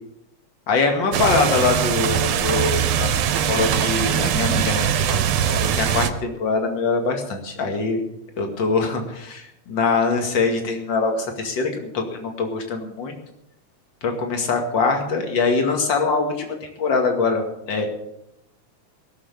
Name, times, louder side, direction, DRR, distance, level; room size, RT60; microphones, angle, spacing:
voice 1, 0.7-8.0 8.4-13.1 14.0-17.9, left 4 dB, 40° left, 4 dB, 2.6 m, -23 dB
sound 1, 1.1-6.1, right 8 dB, 70° right, 2.0 m, -21 dB
17.5 x 7.1 x 8.4 m, 0.80 s
omnidirectional pair, 3.4 m